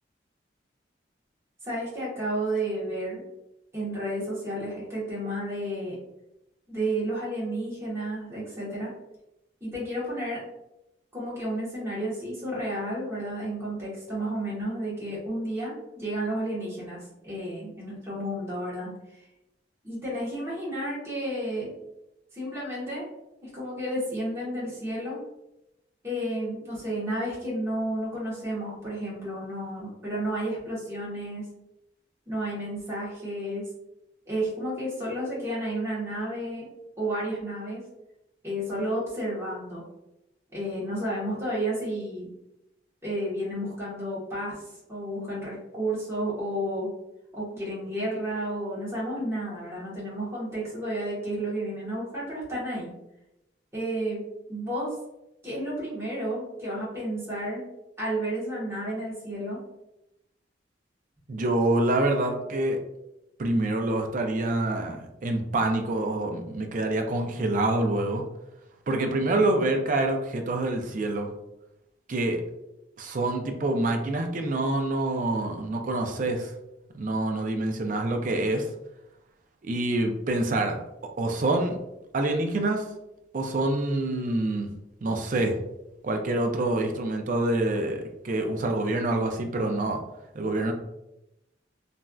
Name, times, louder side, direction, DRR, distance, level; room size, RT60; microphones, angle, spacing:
voice 1, 1.6-3.2 3.7-6.0 6.7-8.9 9.6-10.4 11.1-17.0 17.2-18.9 19.8-21.7 22.3-23.0 23.4-25.2 26.0-31.4 32.3-33.7 34.3-36.7 37.0-37.8 38.4-39.8 40.5-42.3 43.0-44.5 44.9-46.9 47.3-52.9 53.7-54.2 54.5-54.9 55.4-57.7 58.0-59.6, right 1 dB, 15° right, -8 dB, 1.2 m, -31 dB
voice 2, 61.3-62.8 63.4-68.2 68.9-71.3 72.1-72.4 73.0-76.5 76.9-78.7 79.6-80.8 81.2-81.8 82.1-82.8 83.3-84.7 85.0-85.5 86.0-90.0 90.3-90.7, right 2 dB, 45° right, 4 dB, 0.4 m, -26 dB
3.2 x 2.5 x 2.3 m, 0.89 s
head